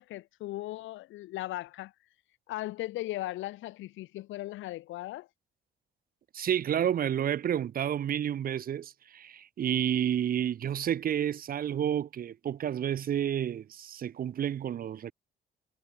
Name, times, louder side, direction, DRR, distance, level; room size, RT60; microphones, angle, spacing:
voice 1, 0.0-1.9 2.5-5.3, left 16 dB, 80° left, 0.5 m, -37 dB
voice 2, 6.3-15.1, right 9 dB, 45° right, 0.5 m, -30 dB
cardioid pair, 90°, 20 cm